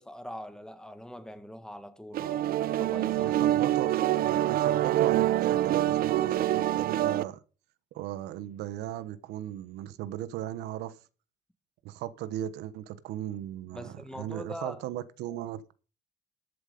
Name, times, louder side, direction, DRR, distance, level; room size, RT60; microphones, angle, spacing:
voice 1, 0.0-3.4 13.7-14.8, equal, 5° left, 1.7 m, -43 dB
sound 1, 2.1-7.2, right 13 dB, 60° right, 0.7 m, -26 dB
voice 2, 3.2-7.4 7.9-11.0 11.8-15.6, right 12 dB, 90° right, 1.2 m, -37 dB
13.5 x 8.1 x 5.3 m
cardioid pair, 110°, 17 cm